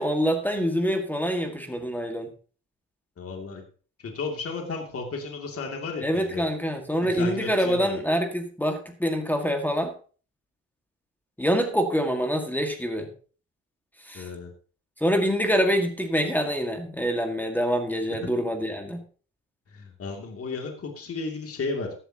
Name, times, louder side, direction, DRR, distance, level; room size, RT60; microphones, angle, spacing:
voice 1, 0.0-2.3 6.0-9.9 11.4-13.1 14.1-14.3 15.0-19.0, equal, 5° left, 5 dB, 1.8 m, -25 dB
voice 2, 3.2-3.6 4.0-6.4 7.0-8.0 14.1-14.5 19.7-21.9, left 4 dB, 50° left, 3 dB, 2.6 m, -34 dB
14.0 x 11.5 x 2.9 m, 0.39 s
cardioid pair, 90°, 30 cm